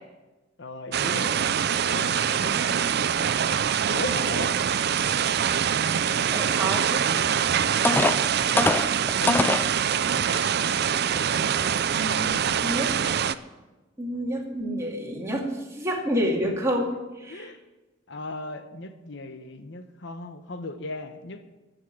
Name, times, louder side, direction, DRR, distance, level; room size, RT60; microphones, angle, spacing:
voice 1, 0.6-2.3 3.9-4.5 7.7-8.2 9.2-9.5 16.4-16.5 17.3-17.6 18.1-21.4, left 2 dB, 65° left, 9 dB, 1.0 m, -37 dB
sound 1, 0.9-13.3, right 8 dB, 55° right, 0.5 m, -24 dB
voice 2, 2.3-3.0 6.3-7.0 11.9-12.4 12.6-12.9 14.0-15.5 15.7-16.9 17.2-17.5, equal, 15° right, -1 dB, 2.3 m, -29 dB
sound 2, 7.3-7.4 7.8-9.7 10.4-10.5 11.0-11.2, left 2 dB, 10° left, 0.4 m, -23 dB
14.0 x 6.5 x 8.8 m, 1.1 s
head